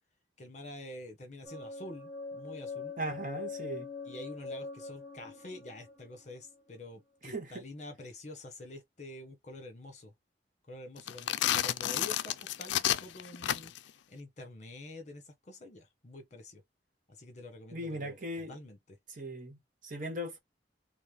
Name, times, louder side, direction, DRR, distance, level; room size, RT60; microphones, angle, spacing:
voice 1, 0.4-2.9 4.0-10.1 10.7-13.7 14.1-16.6 17.1-19.0, left 2 dB, 40° left, 1.4 m, -47 dB
sound 1, 1.4-7.3, left 4 dB, 20° right, 1.6 m, -43 dB
voice 2, 3.0-3.9 7.2-7.6 17.7-18.6 19.1-20.4, right 1 dB, 45° right, 1.1 m, -38 dB
sound 2, 11.0-13.9, left 11 dB, 80° left, 0.4 m, -31 dB
4.1 x 2.2 x 3.9 m
head